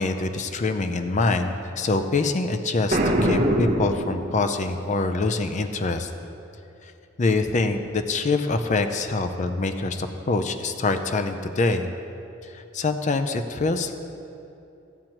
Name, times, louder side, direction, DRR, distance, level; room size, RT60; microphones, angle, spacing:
voice 1, 0.0-6.1 6.8-6.9 7.2-11.9 12.4-13.9, left 3 dB, 40° left, 8 dB, 0.5 m, -25 dB
Boom, 2.9-4.7, right 1 dB, 40° right, 0.9 m, -23 dB
14.5 x 7.5 x 3.0 m, 2.8 s
head